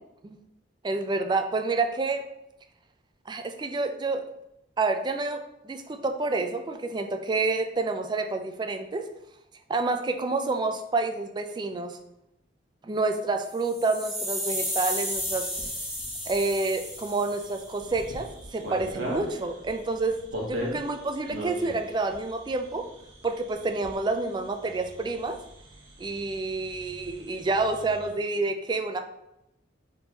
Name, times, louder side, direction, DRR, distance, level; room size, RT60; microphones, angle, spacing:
voice 1, 0.8-2.2 3.3-4.2 4.8-9.1 9.7-12.0 12.8-15.5 16.3-20.2 20.4-22.8 23.2-25.4 26.0-29.0, right 3 dB, 25° right, 6 dB, 0.3 m, -28 dB
sound 1, 13.5-17.7, equal, ahead, 1.3 m, -33 dB
sound 2, 14.5-28.1, equal, 85° right, 1.1 m, -41 dB
4.2 x 3.6 x 2.9 m, 0.83 s
head